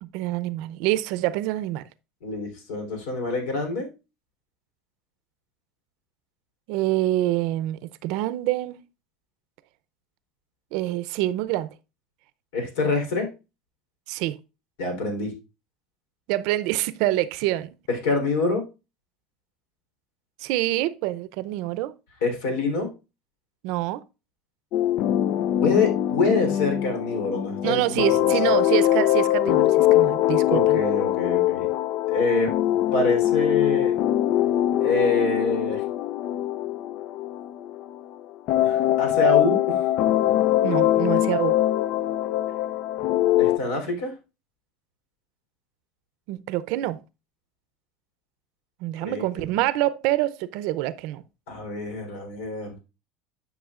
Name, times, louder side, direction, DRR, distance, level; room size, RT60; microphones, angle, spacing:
voice 1, 0.0-1.8 6.7-8.8 10.7-11.7 14.1-14.4 16.3-17.7 20.4-21.9 23.6-24.0 27.6-30.8 40.6-41.6 46.3-47.0 48.8-51.2, right 15 dB, 70° right, 0.6 m, -26 dB
voice 2, 2.2-3.9 12.5-13.3 14.8-15.3 17.9-18.6 22.2-22.9 25.6-28.3 30.5-31.7 32.1-32.5 32.9-34.0 34.8-35.8 38.6-39.8 43.4-44.1 49.0-49.6 51.5-52.8, left 3 dB, 85° left, 3.5 m, -26 dB
sound 1, 24.7-38.0 38.5-43.6, left 13 dB, 60° left, 0.4 m, -22 dB
11.0 x 6.1 x 2.4 m
supercardioid pair, 120°, 0 cm